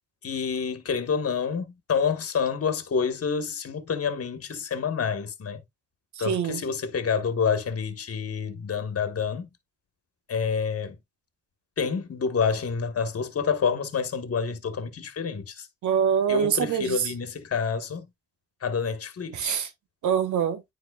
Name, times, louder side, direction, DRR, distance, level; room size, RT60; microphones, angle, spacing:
voice 1, 0.2-5.6 6.2-9.5 10.3-11.0 11.8-15.7 16.3-18.1 18.6-19.5, left 6 dB, 55° left, 1.3 m, -28 dB
voice 2, 6.1-6.6 15.8-17.1 19.3-19.7 20.0-20.6, right 8 dB, 85° right, 1.1 m, -25 dB
9.2 x 4.5 x 2.3 m
supercardioid pair, 55°, 29 cm